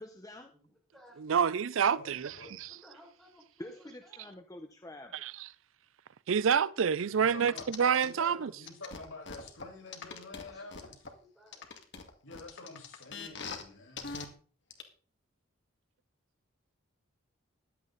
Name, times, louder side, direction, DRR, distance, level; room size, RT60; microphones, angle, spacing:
voice 1, 0.0-0.5 3.6-5.1, left 1 dB, 15° left, 0.9 m, -47 dB
voice 2, 0.5-1.7 2.8-4.4 9.9-11.7, equal, ahead, 5.4 m, -59 dB
voice 3, 1.2-2.7 5.2-5.5 6.3-8.5, right 7 dB, 70° right, 0.5 m, -28 dB
voice 4, 1.9-2.6 7.1-7.7 8.0-11.0 12.2-14.3, left 2 dB, 80° left, 5.4 m, -48 dB
sound 1, 7.5-8.1 8.6-11.1 11.5-13.6 14.0-14.2 14.7-14.8, left 5 dB, 60° left, 2.2 m, -42 dB
15.0 x 11.0 x 4.0 m
head